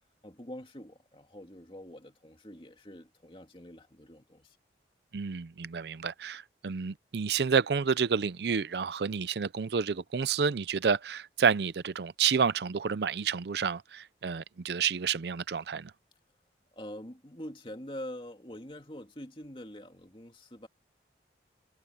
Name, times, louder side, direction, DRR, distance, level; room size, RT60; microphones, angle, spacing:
voice 1, 0.2-4.6 16.7-20.7, left 1 dB, 30° left, 2.4 m, -45 dB
voice 2, 5.1-15.9, right 6 dB, 65° right, 0.5 m, -29 dB
head